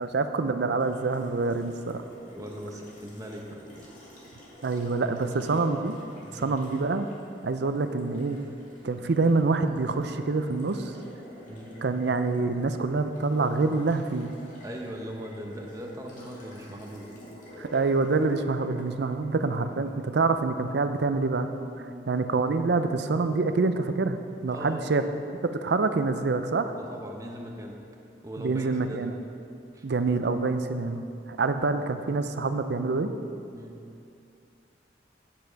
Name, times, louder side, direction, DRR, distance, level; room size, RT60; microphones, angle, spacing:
voice 1, 0.0-2.0 4.6-5.9 6.3-7.1 7.4-8.4 8.8-10.9 11.8-14.3 17.6-21.5 22.1-25.0 25.5-26.7 28.4-29.1 29.8-31.0 31.3-33.1, right 3 dB, 65° right, 9 dB, 0.5 m, -26 dB
Water tap faucet, 0.8-20.0, equal, 45° left, 2.0 m, -49 dB
voice 2, 2.3-3.9 5.0-5.7 6.2-6.6 11.5-11.8 14.6-17.2 21.8-22.1 24.5-24.9 26.7-27.8 28.2-29.1 29.7-29.8 33.5-33.8, equal, 20° right, 0 dB, 1.0 m, -40 dB
8.8 x 7.7 x 4.6 m, 2.5 s
head